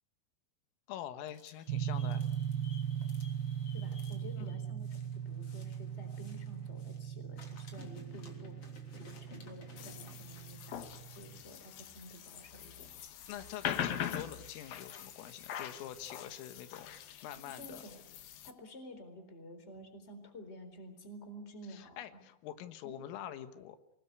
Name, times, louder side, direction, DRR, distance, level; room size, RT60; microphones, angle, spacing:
voice 1, 0.9-2.3 4.4-4.6 13.3-16.9 17.2-17.8 21.7-23.8, left 11 dB, 90° left, 10 dB, 4.1 m, -45 dB
sound 1, 1.2-7.1 7.3-16.6, left 4 dB, 35° left, 3.6 m, -59 dB
sound 2, 1.7-11.4, right 9 dB, 75° right, 2.1 m, -39 dB
voice 2, 3.7-12.9 17.5-18.0 18.4-22.2 22.8-22.9, equal, 15° left, 8 dB, 3.5 m, -51 dB
sound 3, 9.8-18.5, left 9 dB, 65° left, 2.3 m, -42 dB
26.5 x 20.5 x 8.2 m, 0.83 s
omnidirectional pair, 5.7 m